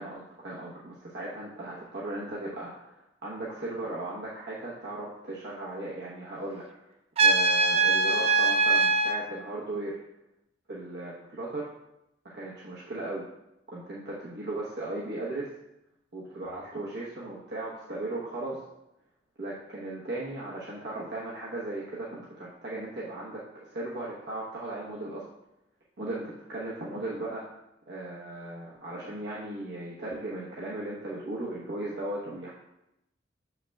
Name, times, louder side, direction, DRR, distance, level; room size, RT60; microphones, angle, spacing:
voice 1, 0.0-6.9 7.2-10.0 10.7-11.6 12.2-13.3 13.7-15.5 16.1-18.6 19.4-25.3 26.0-27.6 27.9-32.5, right 2 dB, 65° right, -6 dB, 1.0 m, -37 dB
Trumpet, 7.2-9.2, right 3 dB, 35° right, 0.3 m, -22 dB
7.2 x 5.7 x 2.3 m, 0.87 s
head